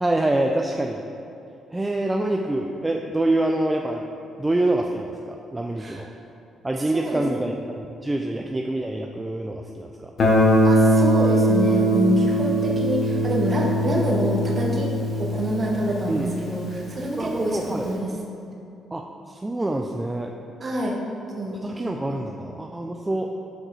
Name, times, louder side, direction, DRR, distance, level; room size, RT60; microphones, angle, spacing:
voice 1, 0.0-1.0 1.7-4.0 4.4-6.1 6.6-10.1 16.1-16.3 17.2-17.9 18.9-20.3 21.6-23.3, right 1 dB, 15° right, 2 dB, 0.3 m, -26 dB
voice 2, 6.9-7.5 10.6-14.9 15.2-18.1 20.6-21.0 21.4-21.6, right 1 dB, 35° right, -1 dB, 1.0 m, -26 dB
Guitar, 10.2-16.9, equal, 55° left, 0.8 m, -21 dB
6.0 x 5.1 x 3.2 m, 2.7 s
cardioid pair, 90°, 0 cm